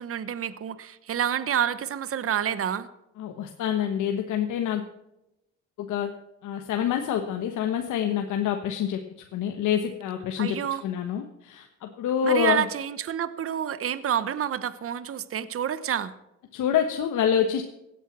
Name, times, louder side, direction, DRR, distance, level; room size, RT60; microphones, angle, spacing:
voice 1, 0.0-2.9 10.4-10.8 12.2-16.1, right 9 dB, 50° right, 15 dB, 1.0 m, -28 dB
voice 2, 3.2-4.8 5.8-6.1 6.4-9.0 9.3-12.6 16.5-17.6, left 8 dB, 80° left, 5 dB, 1.4 m, -26 dB
16.5 x 9.1 x 6.1 m, 0.87 s
cardioid pair, 90°, 30 cm